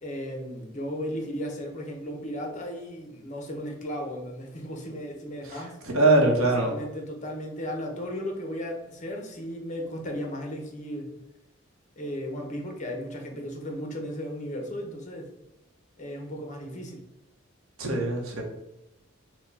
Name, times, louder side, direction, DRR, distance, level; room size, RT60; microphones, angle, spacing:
voice 1, 0.0-5.8 6.5-11.1 12.0-15.3 16.0-17.0, equal, 35° left, 2 dB, 0.8 m, -35 dB
voice 2, 5.8-6.7 17.8-18.4, right 2 dB, 85° right, 1 dB, 0.9 m, -22 dB
4.5 x 2.2 x 4.0 m, 0.88 s
head